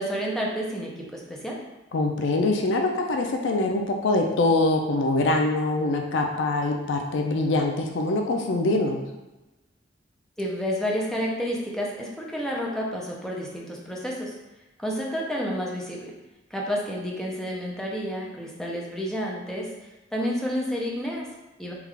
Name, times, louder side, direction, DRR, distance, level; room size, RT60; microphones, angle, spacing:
voice 1, 0.0-1.6 10.4-14.4 14.8-16.1 16.5-19.7 20.1-21.7, equal, ahead, -3 dB, 0.5 m, -30 dB
voice 2, 1.9-9.0, left 2 dB, 70° left, 3 dB, 0.4 m, -24 dB
3.6 x 2.4 x 3.2 m, 1.0 s
head